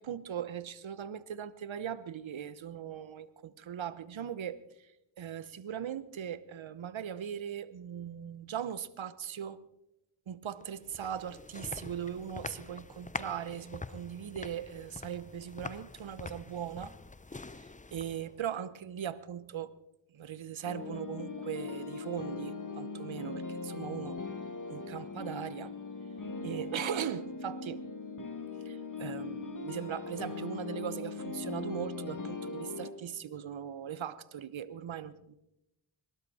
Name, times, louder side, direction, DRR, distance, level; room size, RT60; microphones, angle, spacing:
voice 1, 0.0-4.9 5.2-9.6 10.3-16.9 17.4-17.6 17.9-19.7 20.1-24.2 24.7-25.8 26.4-27.8 28.6-35.3, right 9 dB, 70° right, 16 dB, 1.0 m, -39 dB
sound 1, 10.6-18.4, left 3 dB, 15° left, 0.7 m, -45 dB
sound 2, 20.6-32.9, left 4 dB, 40° left, 2.1 m, -40 dB
22.0 x 12.5 x 4.2 m, 0.87 s
cardioid pair, 40°, 48 cm